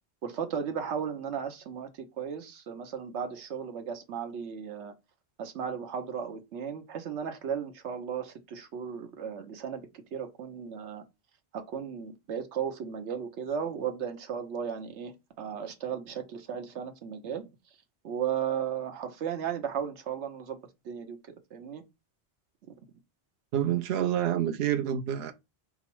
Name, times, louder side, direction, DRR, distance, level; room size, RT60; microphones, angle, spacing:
voice 1, 0.2-1.9 2.2-4.9 5.4-11.0 11.5-17.4 18.0-20.6 20.8-21.2 21.5-21.8, right 7 dB, 85° right, 1.1 m, -35 dB
voice 2, 23.5-25.3, right 10 dB, 70° right, 0.8 m, -28 dB
4.6 x 2.0 x 4.4 m
omnidirectional pair, 1.1 m